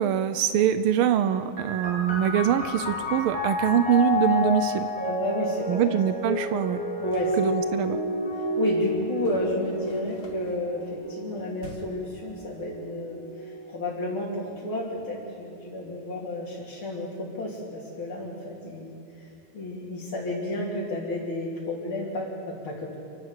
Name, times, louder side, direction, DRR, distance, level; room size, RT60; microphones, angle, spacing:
voice 1, 0.0-4.9 5.7-6.8 7.4-8.0, right 9 dB, 80° right, 11 dB, 1.6 m, -24 dB
sound 1, 1.6-14.8 15.7-16.4, left 1 dB, 5° left, 3.6 m, -31 dB
voice 2, 5.0-5.8 7.0-7.7 8.3-22.9, left 1 dB, 75° left, -6 dB, 3.8 m, -32 dB
sound 2, 7.1-7.4 9.2-10.6 11.6-12.1, left 4 dB, 50° left, 2.4 m, -48 dB
28.0 x 12.0 x 8.1 m, 2.4 s
omnidirectional pair, 2.3 m